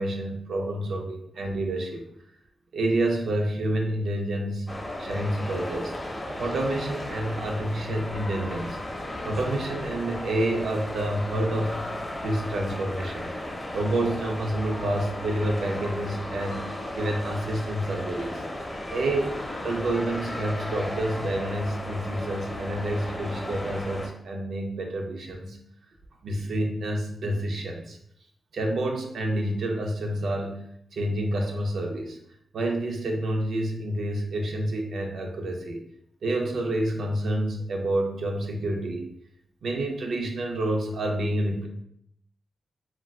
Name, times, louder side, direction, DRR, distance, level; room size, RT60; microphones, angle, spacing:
voice 1, 0.0-2.0 2.7-4.6 5.0-6.0 6.3-8.8 9.2-11.9 12.2-13.3 13.7-18.4 18.9-19.4 19.6-25.6 26.2-28.0 28.5-30.6 30.9-32.2 32.5-35.8 36.2-39.1 39.6-41.7, right 1 dB, 85° right, 2 dB, 0.5 m, -28 dB
sound 1, 4.7-24.1, left 1 dB, 25° left, 0.5 m, -35 dB
2.3 x 2.2 x 3.4 m, 0.70 s
cardioid pair, 75°, 0 cm